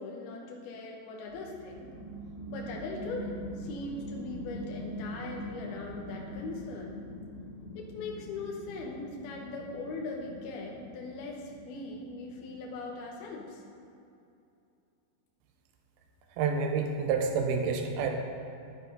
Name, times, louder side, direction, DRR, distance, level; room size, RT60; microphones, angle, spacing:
voice 1, 0.0-2.0 2.5-7.1 7.8-13.6, left 3 dB, 70° left, -1 dB, 2.8 m, -40 dB
sound 1, 1.3-13.4, equal, 45° right, 2.9 m, -43 dB
voice 2, 16.4-18.1, right 5 dB, 75° right, 3 dB, 2.5 m, -28 dB
11.0 x 9.8 x 5.4 m, 2.6 s
omnidirectional pair, 5.1 m